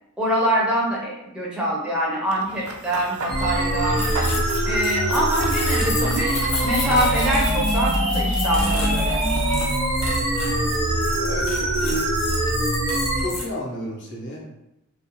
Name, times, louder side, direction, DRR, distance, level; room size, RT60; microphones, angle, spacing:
voice 1, 0.2-4.0 4.7-9.2, right 1 dB, 5° right, -5 dB, 0.4 m, -24 dB
Run / Bird vocalization bird call bird song, 2.3-9.7, right 2 dB, 75° right, 0.4 m, -36 dB
sound 1, 3.3-13.3, right 1 dB, 90° right, 1.0 m, -23 dB
sound 2, 3.9-13.4, left 2 dB, 90° left, 0.8 m, -32 dB
voice 2, 10.4-10.9 11.1-12.1 13.2-14.5, equal, 55° left, -3 dB, 0.7 m, -32 dB
2.3 x 2.0 x 2.9 m, 0.91 s
head